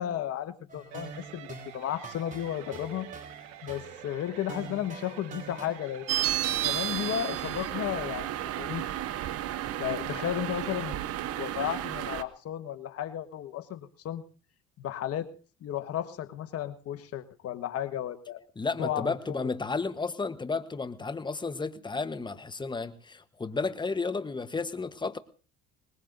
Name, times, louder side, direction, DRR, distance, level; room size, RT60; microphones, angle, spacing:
voice 1, 0.0-3.1 3.6-6.1 6.6-8.8 9.8-11.0 11.4-14.2 14.8-15.3 15.6-18.4 18.8-19.5, left 11 dB, 55° left, 1.3 m, -34 dB
sound 1, 0.7-5.7, right 3 dB, 25° right, 3.6 m, -45 dB
sound 2, 0.9-11.8, right 12 dB, 70° right, 1.4 m, -47 dB
sound 3, 6.1-12.2, right 12 dB, 55° right, 0.8 m, -32 dB
voice 2, 18.6-25.2, left 4 dB, 15° left, 1.1 m, -32 dB
22.5 x 19.5 x 2.6 m
supercardioid pair, 80°, 29 cm